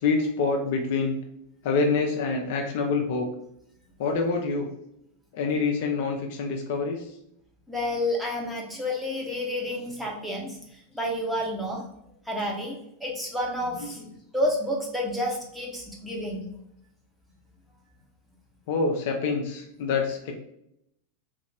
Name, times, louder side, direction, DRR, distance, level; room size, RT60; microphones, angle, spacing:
voice 1, 0.0-1.2 1.6-3.3 4.0-4.7 5.3-7.1 13.8-14.1 18.7-20.4, left 4 dB, 50° left, 2 dB, 0.5 m, -26 dB
voice 2, 7.7-10.6 10.9-11.8 12.3-14.0 14.3-16.5, left 1 dB, ahead, -3 dB, 0.9 m, -30 dB
3.2 x 2.4 x 3.3 m, 0.75 s
figure-of-eight pair, 90°, 0 cm